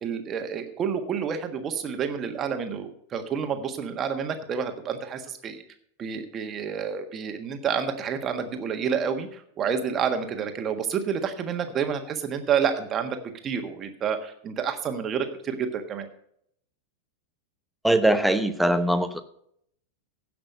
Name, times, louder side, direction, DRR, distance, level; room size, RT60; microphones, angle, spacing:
voice 1, 0.0-5.6 6.0-13.2 13.4-16.1, right 7 dB, 25° right, 6 dB, 1.5 m, -29 dB
voice 2, 17.8-19.2, right 1 dB, ahead, 10 dB, 0.9 m, -21 dB
16.0 x 6.0 x 5.4 m, 0.69 s
figure-of-eight pair, 90°, 0 cm